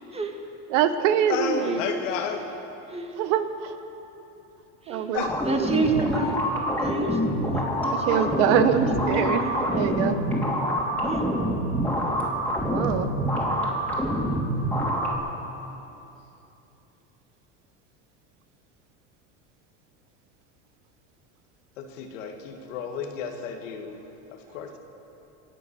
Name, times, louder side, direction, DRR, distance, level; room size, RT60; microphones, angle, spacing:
voice 1, 0.7-1.8 3.2-3.7 4.9-5.2 8.1-9.4 9.7-10.2 12.7-13.1, right 9 dB, 75° right, 10 dB, 1.2 m, -24 dB
voice 2, 1.3-2.5 5.1-5.4 21.8-24.0 24.3-24.8, left 6 dB, 85° left, 4 dB, 1.9 m, -32 dB
sound 1, 5.2-15.2, equal, 5° left, 3.4 m, -26 dB
voice 3, 5.5-6.4 6.8-10.0 11.0-11.3, right 3 dB, 15° right, 4 dB, 2.0 m, -29 dB
24.5 x 8.5 x 6.9 m, 2.9 s
supercardioid pair, 100°, 37 cm